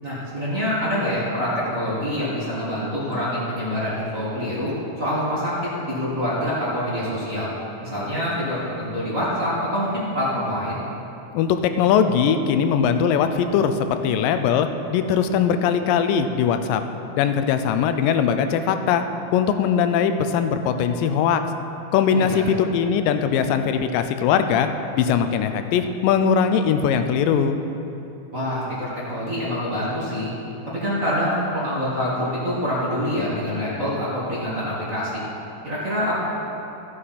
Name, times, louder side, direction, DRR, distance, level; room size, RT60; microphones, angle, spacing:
voice 1, 0.0-7.5 7.8-10.8 22.1-22.4 28.3-30.3 30.7-35.2 35.6-36.2, equal, 35° right, -9 dB, 1.5 m, -26 dB
voice 2, 11.3-16.8 17.1-19.0 19.3-21.4 21.9-24.7 25.0-27.6, left 7 dB, 90° left, 8 dB, 2.3 m, -20 dB
14.0 x 7.6 x 4.2 m, 2.9 s
omnidirectional pair, 3.8 m